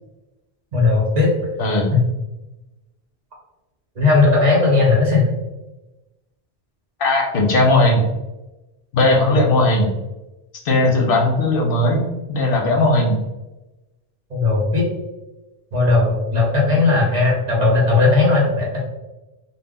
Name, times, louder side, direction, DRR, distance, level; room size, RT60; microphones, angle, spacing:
voice 1, 0.7-1.3 1.9-2.0 4.0-5.3 14.3-14.8 15.7-18.8, left 3 dB, 45° right, -3 dB, 0.7 m, -16 dB
voice 2, 1.6-1.9 7.0-8.1 8.9-9.9 10.6-12.0 12.3-13.2 16.7-16.8, left 2 dB, 65° left, 0 dB, 0.7 m, -17 dB
2.2 x 2.0 x 3.5 m, 1.0 s
omnidirectional pair, 1.1 m